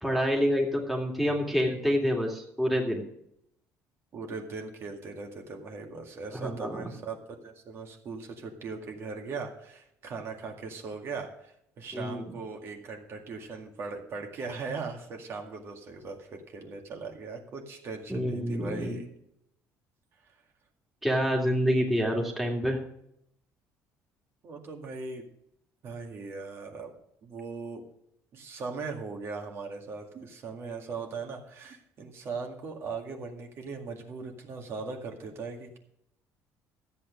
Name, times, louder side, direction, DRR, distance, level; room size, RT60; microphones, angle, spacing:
voice 1, 0.0-3.0 6.3-6.9 11.9-12.3 18.1-19.0 21.0-22.8, equal, ahead, -1 dB, 2.3 m, -27 dB
voice 2, 4.1-19.1 24.4-25.2 25.8-26.9 27.2-27.8 28.3-35.8, right 4 dB, 45° right, 2 dB, 2.1 m, -39 dB
13.5 x 8.5 x 5.2 m, 0.74 s
cardioid pair, 155°, 6 cm